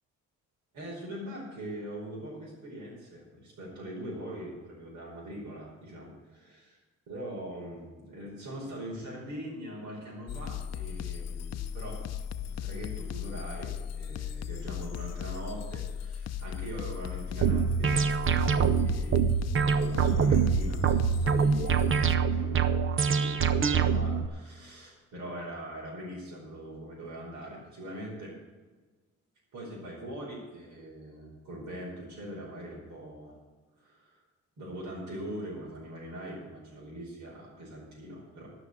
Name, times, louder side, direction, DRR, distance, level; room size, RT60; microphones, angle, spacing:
voice 1, 0.7-6.5 7.1-12.0 12.4-22.7 23.1-28.3 29.5-33.4 33.8-34.2 34.6-38.5, equal, 65° right, -6 dB, 5.0 m, -42 dB
sound 1, 10.3-22.2, left 8 dB, 55° left, 0.7 m, -37 dB
sound 2, 17.4-24.3, right 6 dB, 45° right, 0.9 m, -25 dB
13.0 x 6.2 x 9.5 m, 1.3 s
cardioid pair, 90°, 30 cm